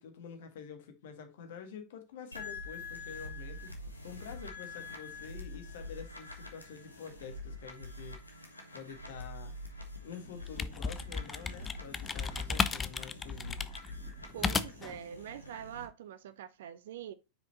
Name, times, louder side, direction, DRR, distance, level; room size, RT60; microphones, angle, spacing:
voice 1, 0.0-3.7 4.0-9.5 10.0-13.7, left 7 dB, 55° left, 1.7 m, -48 dB
sound 1, 2.3-15.9, left 2 dB, 85° left, 1.5 m, -46 dB
sound 2, 10.3-15.0, left 5 dB, 20° left, 0.6 m, -34 dB
voice 2, 14.3-17.1, right 10 dB, 55° right, 0.6 m, -44 dB
6.1 x 5.0 x 3.9 m
figure-of-eight pair, 90°, 0 cm